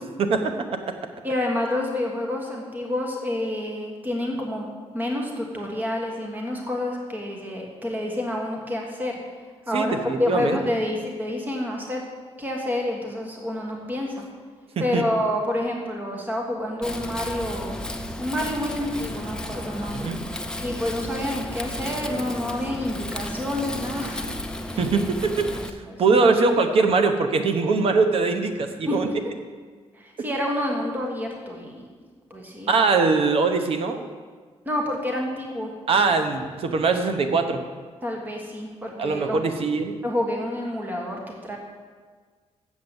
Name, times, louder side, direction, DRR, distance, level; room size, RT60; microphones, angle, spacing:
voice 1, 0.2-0.5 9.7-10.6 14.8-15.0 19.9-20.2 24.8-25.5 26.0-29.1 32.7-34.1 35.9-37.6 39.0-39.9, right 4 dB, 60° right, 6 dB, 1.0 m, -22 dB
voice 2, 1.2-4.7 4.9-9.2 9.7-12.0 12.4-14.2 14.8-17.8 18.2-20.1 20.6-24.2 24.6-24.8 25.5-26.3 28.9-29.2 29.9-31.8 32.3-32.9 34.6-35.7 38.0-39.4 40.0-41.6, left 1 dB, 15° right, 0 dB, 1.4 m, -28 dB
Wind, 16.8-25.7, left 1 dB, 5° left, 0.6 m, -33 dB
7.5 x 7.3 x 8.0 m, 1.5 s
wide cardioid pair, 145°, 11 cm